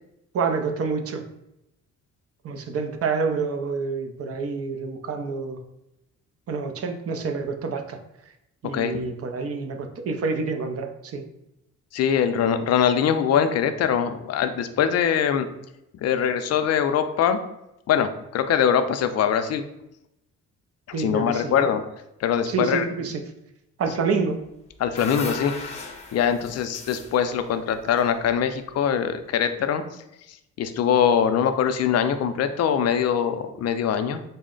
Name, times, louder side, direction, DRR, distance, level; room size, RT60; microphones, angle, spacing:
voice 1, 0.3-1.2 2.4-5.6 6.5-8.0 8.6-11.2 20.9-21.7 22.4-23.2 23.8-24.4, right 4 dB, 50° right, 6 dB, 0.6 m, -28 dB
voice 2, 11.9-15.5 16.0-17.4 17.9-19.6 21.0-21.8 22.2-22.9 24.8-25.8 26.1-29.8 30.6-34.2, left 8 dB, 55° left, 9 dB, 0.4 m, -22 dB
sound 1, 24.5-28.7, left 4 dB, 20° left, 0.7 m, -38 dB
4.0 x 2.1 x 3.7 m, 0.86 s
cardioid pair, 90°, 30 cm